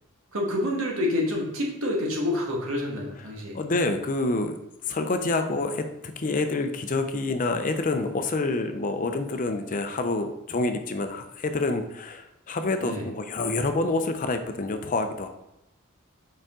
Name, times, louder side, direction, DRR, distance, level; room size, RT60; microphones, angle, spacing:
voice 1, 0.3-3.6 12.8-13.1, left 1 dB, 75° right, -1 dB, 1.6 m, -28 dB
voice 2, 3.5-4.6 4.9-15.3, left 2 dB, 40° left, 7 dB, 0.5 m, -27 dB
5.1 x 5.0 x 3.7 m, 0.89 s
head